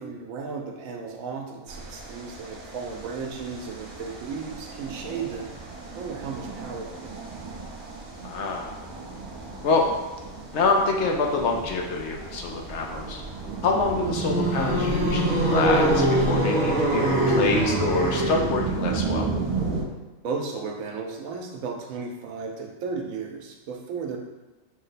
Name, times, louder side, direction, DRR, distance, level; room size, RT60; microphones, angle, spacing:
voice 1, 0.0-7.3 20.2-24.2, right 5 dB, 90° right, 2 dB, 1.1 m, -35 dB
sound 1, 1.7-19.8, right 4 dB, 40° right, 0.8 m, -34 dB
voice 2, 8.2-8.7 9.6-9.8 10.5-13.2 13.6-19.3, left 3 dB, 65° left, 1 dB, 0.8 m, -26 dB
sound 2, 14.0-18.7, right 1 dB, 60° right, 1.0 m, -23 dB
5.3 x 2.2 x 4.0 m, 1.1 s
omnidirectional pair, 1.4 m